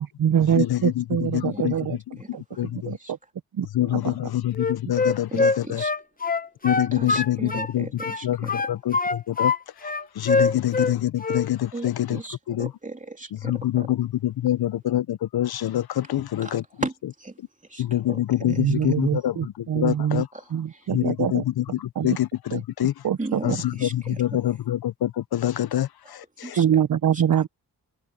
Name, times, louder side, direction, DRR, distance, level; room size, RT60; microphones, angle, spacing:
voice 1, 0.0-2.0 2.3-2.4 2.8-3.0 3.6-3.7 3.9-4.1 18.4-20.2 20.5-21.4 22.0-22.2 22.5-22.6 23.0-23.6 26.6-27.5, right 9 dB, 55° right, 0.7 m, -24 dB
voice 2, 0.5-2.0 2.6-3.0 3.7-5.8 6.6-7.9 8.2-9.5 9.8-12.2 12.5-12.7 13.4-16.6 17.8-20.3 20.9-22.9 23.4-26.6, left 13 dB, 65° left, 0.6 m, -26 dB
voice 3, 2.2-3.1 5.3-5.9 6.9-8.7 11.7-13.9 16.4-18.2 18.5-18.9 20.3-20.9 23.2-24.2 26.0-26.1 26.4-26.7 27.1-27.2, right 2 dB, 20° right, 3.1 m, -37 dB
Wind instrument woodwind instrument, 4.5-7.7 8.0-9.6 9.8-10.9 11.2-11.5, left 3 dB, 20° left, 0.8 m, -24 dB
wide cardioid pair, 90°, 41 cm